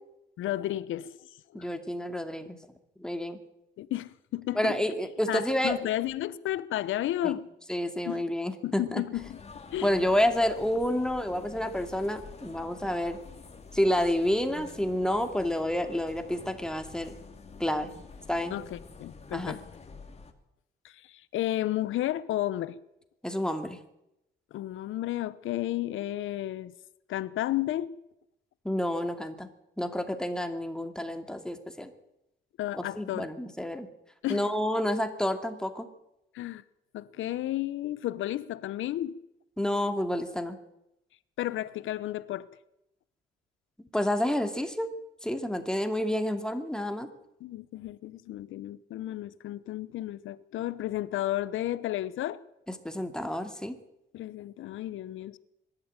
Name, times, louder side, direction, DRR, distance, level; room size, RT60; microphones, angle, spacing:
voice 1, 0.4-1.1 1.6-1.7 3.8-4.8 5.3-7.5 8.0-8.2 8.6-9.4 9.7-9.9 18.5-19.6 20.8-22.8 24.5-26.7 27.1-27.9 32.6-33.3 34.2-34.5 36.3-36.6 36.9-39.2 41.4-42.5 47.4-52.4 54.1-55.4, left 14 dB, 80° left, 1.0 m, -32 dB
voice 2, 1.5-2.6 3.0-3.4 4.6-5.7 7.2-7.4 7.7-9.0 9.8-13.2 13.7-17.1 17.6-17.9 18.3-18.5 19.3-19.6 23.2-23.8 28.6-29.5 29.8-31.9 32.8-33.9 34.3-35.9 39.6-40.6 43.9-44.9 45.2-47.1 52.8-53.7, left 1 dB, 5° left, 2.6 m, -29 dB
sound 1, 9.1-20.3, left 4 dB, 30° left, 2.7 m, -48 dB
23.0 x 12.5 x 9.0 m
cardioid pair, 90°, 20 cm